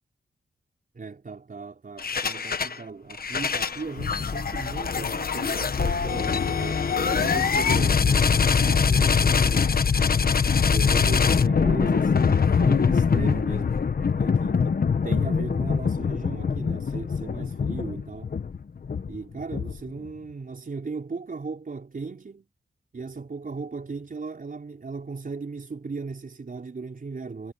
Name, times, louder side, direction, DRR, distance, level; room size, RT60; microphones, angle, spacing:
voice 1, 0.9-9.8 10.7-13.8 14.1-18.3 19.1-22.5 22.9-27.5, right 4 dB, 50° right, 5.7 m, -37 dB
sound 1, 2.0-2.8 3.1-20.1, left 6 dB, 55° left, 1.2 m, -23 dB
cardioid pair, 75°, 18 cm